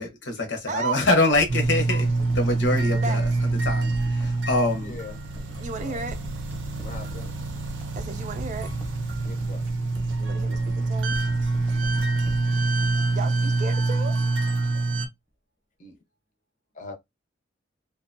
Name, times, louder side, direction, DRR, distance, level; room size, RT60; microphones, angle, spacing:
voice 1, 0.0-2.1 2.3-3.3 3.6-5.0, left 2 dB, 70° left, 0.9 m, -24 dB
voice 2, 0.7-1.0 2.9-3.2 5.6-6.2 7.9-8.7 10.2-11.2 13.1-14.2, right 4 dB, 40° right, 0.4 m, -33 dB
sound 1, 1.3-13.8 14.1-14.2, equal, 10° right, 0.9 m, -40 dB
sound 2, 1.5-15.1, right 3 dB, 90° right, 0.6 m, -26 dB
voice 3, 4.8-5.2 5.5-6.1 6.8-7.3 9.2-9.6 15.8-16.0 16.7-16.9, left 4 dB, 40° left, 0.7 m, -42 dB
2.5 x 2.2 x 2.5 m
head